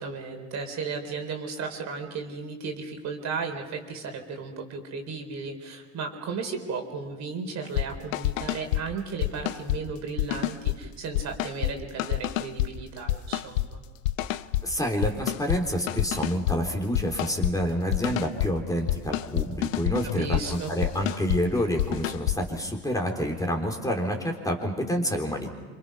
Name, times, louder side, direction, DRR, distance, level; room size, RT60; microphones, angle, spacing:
voice 1, 0.0-13.8 20.2-20.7, right 4 dB, 40° right, 4 dB, 3.9 m, -35 dB
sound 1, 7.6-7.9 8.1-8.8 9.2-9.8 10.2-10.8 11.1-11.7 12.0-12.7 13.1-13.7 14.0-14.6 15.0-15.6 15.9-16.6 16.9-17.5 17.9-18.5 18.9-21.4 21.8-22.4, left 15 dB, 70° left, 0.9 m, -27 dB
voice 2, 14.6-25.5, equal, 10° left, 1 dB, 3.7 m, -28 dB
27.0 x 26.5 x 5.7 m, 1.4 s
hypercardioid pair, 80°, 42 cm